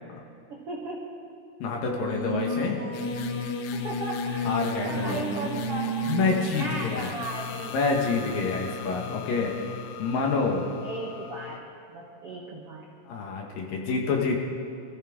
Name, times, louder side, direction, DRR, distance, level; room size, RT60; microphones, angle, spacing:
voice 1, 0.5-1.1 2.7-2.8 3.7-4.5 4.8-6.2 6.5-7.8 10.8-11.6 11.9-12.9, right 2 dB, 85° right, -2 dB, 1.3 m, -36 dB
voice 2, 1.6-2.8 4.4-5.2 6.1-7.1 7.7-9.7 10.0-10.7 13.1-14.4, left 4 dB, 60° left, 0 dB, 2.9 m, -27 dB
Singing, 1.8-6.7, right 2 dB, 50° right, 2.0 m, -32 dB
sound 1, 2.9-11.6, left 12 dB, 85° left, 3.1 m, -37 dB
24.0 x 15.0 x 3.7 m, 2.6 s
omnidirectional pair, 5.0 m